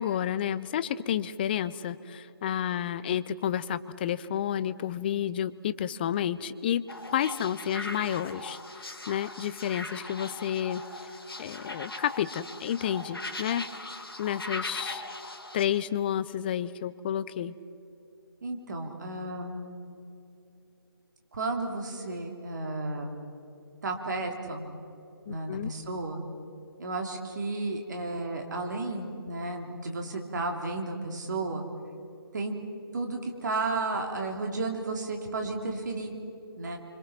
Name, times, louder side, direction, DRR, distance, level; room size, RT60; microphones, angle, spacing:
voice 1, 0.0-10.8 11.4-13.6 14.2-15.0 15.5-17.5 25.3-25.7, left 10 dB, 25° left, 16 dB, 0.6 m, -30 dB
sound 1, 6.9-15.6, left 2 dB, 70° left, 3.4 m, -40 dB
voice 2, 18.4-19.7 21.3-23.1 23.8-24.7 25.3-26.2 26.8-31.6 32.3-32.5 32.9-36.1 36.6-36.8, right 2 dB, 50° right, 3 dB, 3.3 m, -33 dB
26.5 x 26.0 x 6.0 m, 2.8 s
figure-of-eight pair, 150°, 13 cm